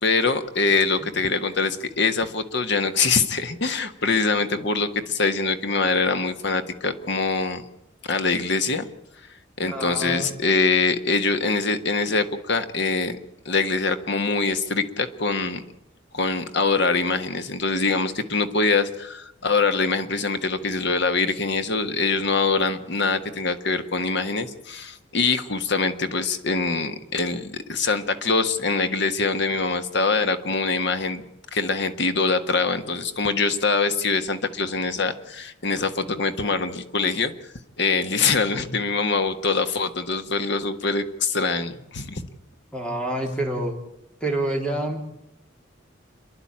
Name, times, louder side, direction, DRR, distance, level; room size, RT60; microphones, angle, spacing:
voice 1, 0.0-7.6 8.1-8.9 9.6-13.2 13.4-15.6 16.1-31.2 31.5-37.3 37.8-42.3, left 4 dB, 60° left, 9 dB, 1.5 m, -24 dB
voice 2, 9.7-10.3 38.5-38.7 42.7-43.7 44.2-45.0, right 1 dB, 5° left, 2 dB, 3.5 m, -28 dB
28.5 x 11.0 x 8.8 m, 0.85 s
head